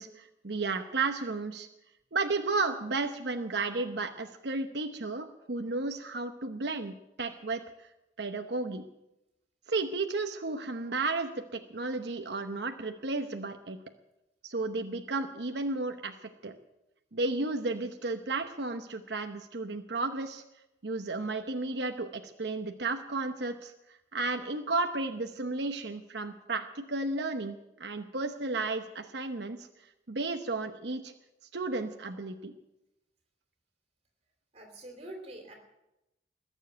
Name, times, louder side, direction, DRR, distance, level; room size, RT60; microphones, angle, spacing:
voice 1, 0.0-1.7 2.1-7.9 8.2-8.8 9.7-13.8 14.4-16.5 17.1-20.4 20.8-29.7 30.1-31.1 31.5-32.5, right 3 dB, 70° right, 5 dB, 0.9 m, -33 dB
voice 2, 34.5-35.5, right 1 dB, 35° right, 3 dB, 3.0 m, -45 dB
21.0 x 7.3 x 9.1 m, 0.92 s
head